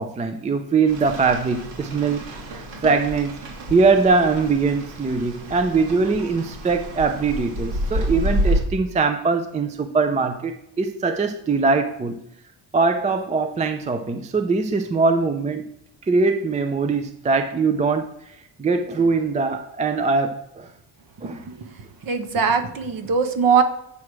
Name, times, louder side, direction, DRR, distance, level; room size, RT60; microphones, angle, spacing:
voice 1, 0.0-3.4 3.7-12.2 12.7-15.6 16.1-18.1 18.6-20.7 21.2-21.4, right 4 dB, 20° right, 7 dB, 0.3 m, -22 dB
Rain, 0.9-8.6, equal, 70° right, 2.9 m, -29 dB
voice 2, 22.0-23.6, right 6 dB, 50° right, 8 dB, 1.1 m, -20 dB
8.3 x 4.9 x 6.0 m, 0.78 s
cardioid pair, 175°, 44 cm